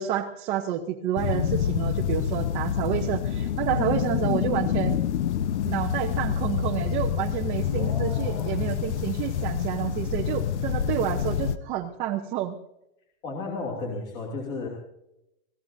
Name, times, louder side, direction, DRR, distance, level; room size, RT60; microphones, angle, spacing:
voice 1, 0.0-5.0 5.6-12.5, right 11 dB, 20° right, 1 dB, 0.6 m, -29 dB
sound 1, 1.2-11.6, left 9 dB, 85° left, 1.0 m, -27 dB
voice 2, 7.7-8.7 13.2-14.7, left 3 dB, 30° left, -2 dB, 2.7 m, -34 dB
25.5 x 17.5 x 2.7 m, 0.86 s
supercardioid pair, 175°, 33 cm